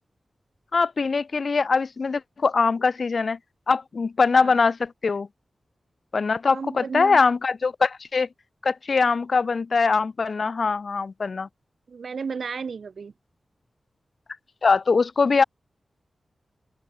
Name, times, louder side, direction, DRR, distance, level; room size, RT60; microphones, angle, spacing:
voice 1, 0.7-3.4 3.7-5.3 6.1-8.3 8.6-11.5 14.6-15.4, left 4 dB, 55° left, 0.3 m, -22 dB
voice 2, 6.5-7.2 11.9-13.1, right 5 dB, 75° right, 1.1 m, -33 dB
open air
wide cardioid pair, 95°, 0 cm